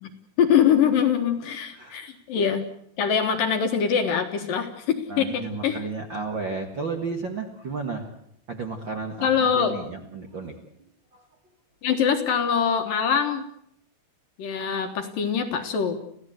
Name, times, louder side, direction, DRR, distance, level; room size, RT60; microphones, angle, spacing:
voice 1, 0.0-2.6 3.0-5.8 9.2-9.8 11.8-13.5 14.4-16.0, left 7 dB, 60° left, 6 dB, 2.6 m, -23 dB
voice 2, 1.7-2.1 5.1-8.1 8.5-10.5 11.1-11.2, right 4 dB, 60° right, 4 dB, 1.2 m, -33 dB
29.5 x 16.0 x 8.0 m, 0.72 s
omnidirectional pair, 5.3 m